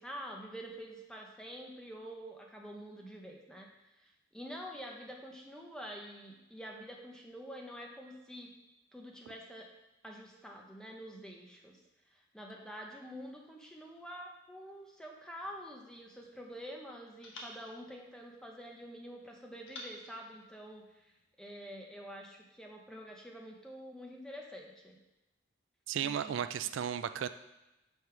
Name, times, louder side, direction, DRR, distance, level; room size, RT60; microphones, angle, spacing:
voice 1, 0.0-3.7 4.0-8.5 8.9-9.7 10.0-11.8 12.1-21.1 21.4-25.0 26.0-26.4, equal, 5° left, 0 dB, 0.8 m, -47 dB
sound 1, 15.4-16.6 17.2-18.8 19.7-21.2, left 2 dB, 80° left, 1.3 m, -53 dB
voice 2, 25.9-27.3, right 9 dB, 80° right, 12 dB, 0.3 m, -34 dB
5.4 x 4.8 x 6.0 m, 0.98 s
head